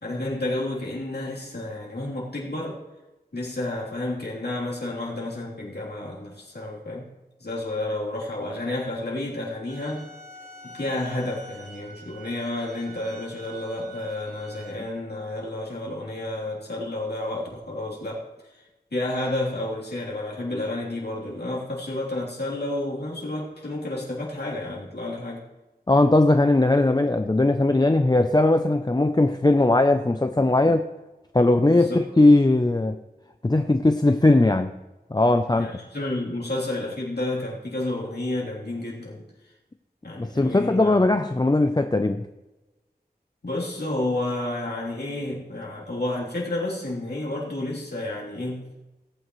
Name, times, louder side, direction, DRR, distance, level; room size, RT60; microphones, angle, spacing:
voice 1, 0.0-2.8 3.3-7.1 7.4-10.1 10.6-18.6 18.9-25.4 31.7-32.0 35.6-39.3 40.0-41.1 43.4-48.7, left 1 dB, 85° left, -6 dB, 3.3 m, -31 dB
sound 1, 9.7-14.7, right 1 dB, 60° right, 4.7 m, -45 dB
voice 2, 25.9-30.9 31.3-33.0 33.4-34.7 35.1-35.7 40.2-42.3, left 2 dB, 25° left, 8 dB, 0.5 m, -19 dB
19.0 x 9.2 x 3.2 m, 1.1 s
wide cardioid pair, 60°, 17 cm